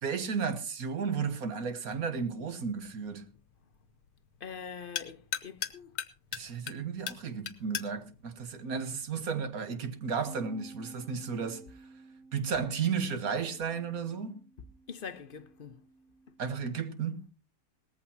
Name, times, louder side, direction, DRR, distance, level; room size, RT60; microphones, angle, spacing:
voice 1, 0.0-3.2 6.3-11.6 12.3-14.4 16.4-17.2, right 6 dB, 60° right, 1.6 m, -33 dB
sound 1, 1.9-9.5, left 9 dB, 80° left, 1.5 m, -42 dB
voice 2, 4.4-5.9 14.9-15.8, left 6 dB, 40° left, 0.9 m, -43 dB
Bass guitar, 10.3-16.5, right 4 dB, ahead, 2.2 m, -53 dB
18.5 x 14.5 x 2.8 m
omnidirectional pair, 1.8 m